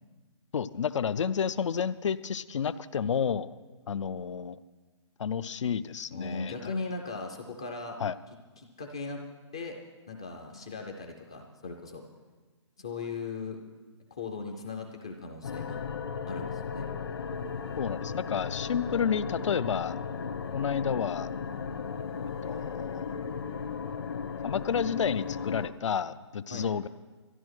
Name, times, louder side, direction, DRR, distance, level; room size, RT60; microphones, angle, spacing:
voice 1, 0.5-3.5 3.9-4.6 5.2-6.7 8.0-8.1 17.8-20.0 20.5-21.3 22.2-23.2 24.4-26.9, left 7 dB, 80° left, 15 dB, 0.5 m, -30 dB
voice 2, 6.1-8.0 8.6-9.2 9.5-9.8 10.1-12.0 12.8-13.6 14.1-15.8 16.3-16.9 26.5-26.6, left 4 dB, 10° left, 3 dB, 0.3 m, -38 dB
sound 1, 15.4-25.7, left 6 dB, 55° left, 1.0 m, -35 dB
12.5 x 11.0 x 6.3 m, 1.3 s
hypercardioid pair, 175°, 15 cm